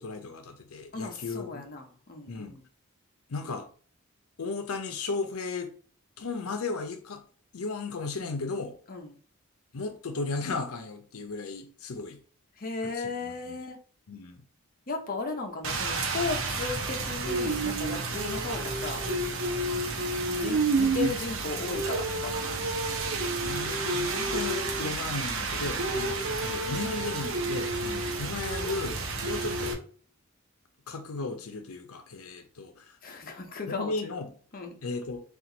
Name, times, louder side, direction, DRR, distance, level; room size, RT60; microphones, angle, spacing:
voice 1, 0.0-1.7 2.3-2.6 3.3-3.7 4.4-5.7 6.2-7.2 7.5-8.8 9.7-12.2 12.8-13.6 14.1-14.4 20.4-20.6 21.0-21.1 23.4-29.8 30.9-33.0 33.7-34.3 34.8-35.2, left 3 dB, 80° left, 0.6 m, -35 dB
voice 2, 0.9-2.6 8.9-9.1 12.6-13.8 14.9-19.0 20.4-22.6 29.4-29.6 33.0-34.1 34.5-34.7, left 4 dB, 40° left, 0.7 m, -36 dB
Rain, 15.6-29.7, right 3 dB, 60° right, 0.8 m, -30 dB
4.4 x 2.5 x 3.8 m
head